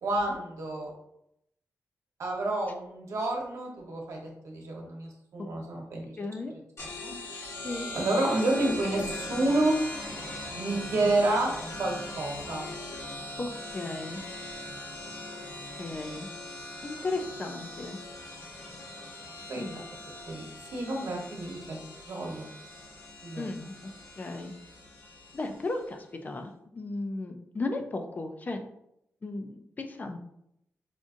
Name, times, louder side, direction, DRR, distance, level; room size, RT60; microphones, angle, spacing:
voice 1, 0.0-0.9 2.2-6.0 7.0-7.1 7.9-9.8 10.6-11.5 11.8-12.6 19.5-19.8 20.3-20.4 20.7-21.8 22.1-22.5 23.2-23.5, right 2 dB, 75° right, 0 dB, 1.0 m, -29 dB
voice 2, 6.2-6.5 7.6-7.9 11.0-11.3 13.4-14.2 15.8-16.3 16.8-18.0 19.6-19.8 23.4-23.9 24.2-24.5 25.3-28.6 29.2-30.2, left 2 dB, 30° left, 6 dB, 0.4 m, -35 dB
sound 1, 6.8-25.9, left 1 dB, 55° left, 1.1 m, -41 dB
5.0 x 2.5 x 2.5 m, 0.78 s
wide cardioid pair, 125°, 5 cm